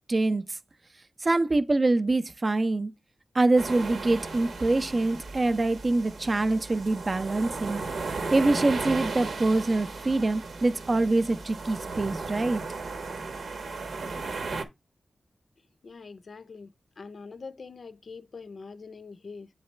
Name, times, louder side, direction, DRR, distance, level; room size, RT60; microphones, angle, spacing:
voice 1, 0.1-0.6 1.2-2.9 3.3-7.8 8.3-12.6, right 2 dB, 35° right, 0.5 m, -25 dB
sound 1, 3.6-14.6, right 3 dB, 85° right, 1.1 m, -35 dB
voice 2, 15.8-19.5, left 4 dB, 55° left, 0.5 m, -44 dB
8.8 x 4.0 x 3.2 m
wide cardioid pair, 140°, 0 cm